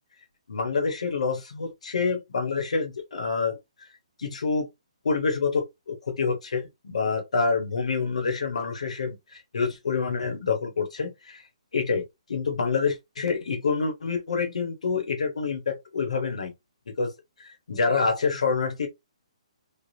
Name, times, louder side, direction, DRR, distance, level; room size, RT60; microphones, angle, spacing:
voice 1, 0.5-3.6 4.2-4.7 5.0-11.4 11.7-12.0 12.3-16.5 17.0-17.1 17.4-18.9, left 4 dB, 75° left, 1.1 m, -27 dB
3.4 x 2.4 x 2.7 m
hypercardioid pair, 165°, 4 cm